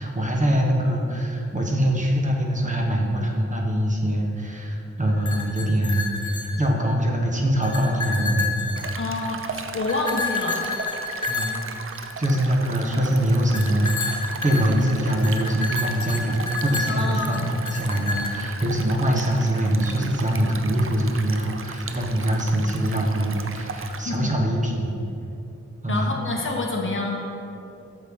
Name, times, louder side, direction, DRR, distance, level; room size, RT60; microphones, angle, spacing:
voice 1, 0.0-6.3 6.6-8.5 11.3-11.5 12.2-24.9 25.8-26.1, equal, 25° right, 0 dB, 1.1 m, -23 dB
sound 1, 5.1-7.1 7.4-9.4 9.9-12.6 13.5-18.6, left 3 dB, 90° left, 1.0 m, -30 dB
Stream, 8.7-24.0, right 5 dB, 45° right, 0.5 m, -37 dB
voice 2, 9.0-10.6 16.9-17.4 23.9-24.3 25.9-27.2, left 2 dB, 45° left, 0 dB, 1.1 m, -28 dB
8.5 x 6.5 x 3.6 m, 2.8 s
wide cardioid pair, 110°, 29 cm